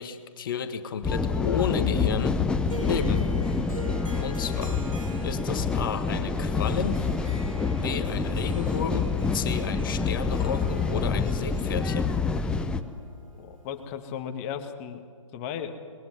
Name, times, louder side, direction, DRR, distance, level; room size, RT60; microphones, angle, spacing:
voice 1, 0.0-2.4 2.8-3.2 4.2-4.8 5.2-7.0 7.8-12.1, left 7 dB, 40° left, 8 dB, 1.5 m, -32 dB
sound 1, 1.0-12.8, left 4 dB, 5° left, 0.8 m, -27 dB
Harp, 2.6-13.9, right 1 dB, 85° right, 4.6 m, -45 dB
voice 2, 13.4-15.0 15.3-15.8, left 8 dB, 25° left, 7 dB, 1.8 m, -35 dB
29.0 x 21.0 x 9.7 m, 2.2 s
figure-of-eight pair, 130°, 17 cm